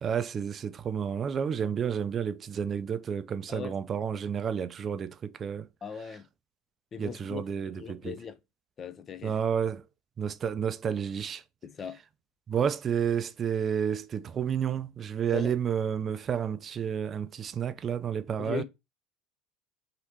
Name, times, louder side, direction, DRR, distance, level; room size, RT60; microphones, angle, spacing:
voice 1, 0.0-5.7 7.0-8.2 9.2-9.8 10.2-11.4 12.5-18.6, right 8 dB, 40° right, 0.4 m, -30 dB
voice 2, 5.8-6.3 6.9-8.4 8.8-9.3 11.6-12.0 15.3-15.5 18.4-18.6, left 7 dB, 40° left, 0.5 m, -39 dB
3.2 x 2.8 x 2.9 m
supercardioid pair, 90°, 0 cm